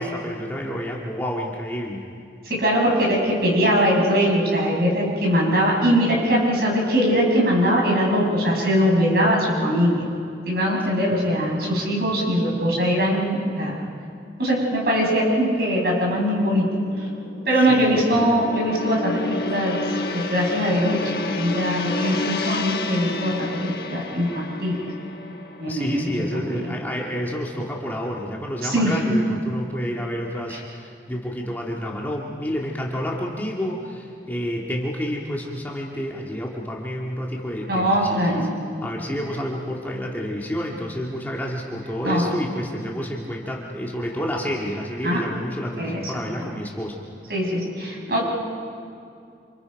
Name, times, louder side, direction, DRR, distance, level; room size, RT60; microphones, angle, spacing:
voice 1, 0.0-2.1 17.7-18.3 25.7-38.5 38.8-47.0, equal, 10° left, -2 dB, 1.9 m, -29 dB
voice 2, 2.4-10.1 10.5-13.7 14.4-16.7 17.0-17.1 17.5-19.8 20.1-24.8 25.6-26.1 26.3-26.6 28.6-29.0 30.5-30.6 37.7-38.5 42.0-42.2 45.0-45.2 45.8-46.0 46.4-46.5 47.3-48.2, equal, 60° right, -2 dB, 5.9 m, -21 dB
Gong, 15.2-27.7 28.0-28.3, left 3 dB, 60° left, 1.5 m, -32 dB
27.5 x 27.5 x 5.2 m, 2.4 s
head